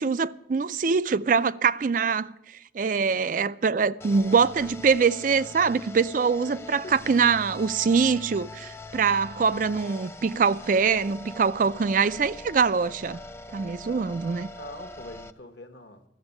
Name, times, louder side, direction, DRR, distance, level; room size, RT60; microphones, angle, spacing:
voice 1, 0.0-2.3 2.7-13.2 13.5-14.5, right 5 dB, 45° right, 0.4 m, -23 dB
sound 1, 4.0-15.3, left 2 dB, 15° left, 0.4 m, -42 dB
voice 2, 6.5-6.9 13.6-14.1 14.5-16.0, left 2 dB, 60° left, 1.1 m, -44 dB
13.0 x 7.1 x 9.6 m
head